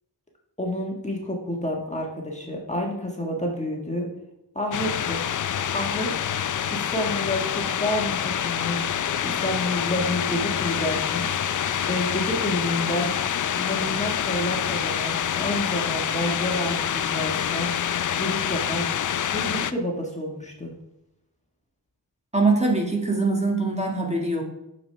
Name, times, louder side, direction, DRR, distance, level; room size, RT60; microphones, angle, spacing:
voice 1, 0.6-4.1 4.5-5.2 5.7-6.1 6.7-11.5 11.9-13.1 13.5-17.7 18.2-18.9 19.3-20.7, left 1 dB, 15° left, -1 dB, 1.5 m, -29 dB
sound 1, 4.7-19.7, left 9 dB, 50° left, 0.5 m, -26 dB
voice 2, 22.3-24.4, right 3 dB, 15° right, -1 dB, 1.8 m, -23 dB
6.9 x 6.8 x 3.3 m, 0.89 s
cardioid pair, 45°, 40 cm